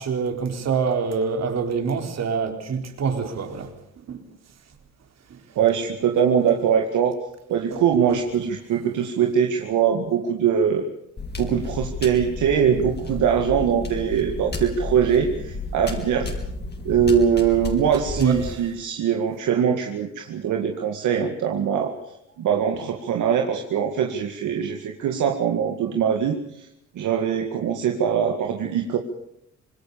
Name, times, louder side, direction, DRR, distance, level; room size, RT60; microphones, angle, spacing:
voice 1, 0.0-3.7 4.1-4.3 5.3-5.4 7.7-7.8 18.1-18.6, right 5 dB, 60° right, 4.1 m, -26 dB
voice 2, 5.6-7.2 7.5-10.9 11.4-16.3 16.8-21.9 22.4-26.7 27.0-29.0, right 8 dB, 80° right, 2.2 m, -22 dB
sound 1, 11.2-18.5, left 3 dB, 35° left, 4.5 m, -32 dB
26.0 x 20.5 x 7.0 m
cardioid pair, 90°, 30 cm